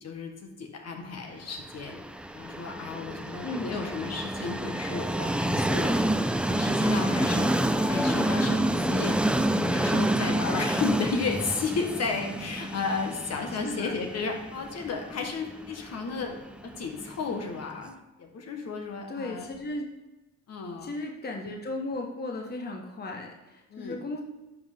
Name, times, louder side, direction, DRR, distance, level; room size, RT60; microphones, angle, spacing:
voice 1, 0.0-2.0 2.3-5.9 6.5-7.5 7.9-9.2 9.6-16.4 16.6-19.5 20.5-20.9 23.7-24.0, left 4 dB, 60° left, 3 dB, 1.4 m, -33 dB
Train, 1.7-17.5, right 1 dB, 5° right, 0.4 m, -28 dB
voice 2, 3.4-3.8 13.6-13.9 19.1-19.9 20.8-24.2, left 2 dB, 35° left, 2 dB, 1.1 m, -35 dB
11.0 x 5.6 x 3.6 m, 1.1 s
cardioid pair, 90°, 30 cm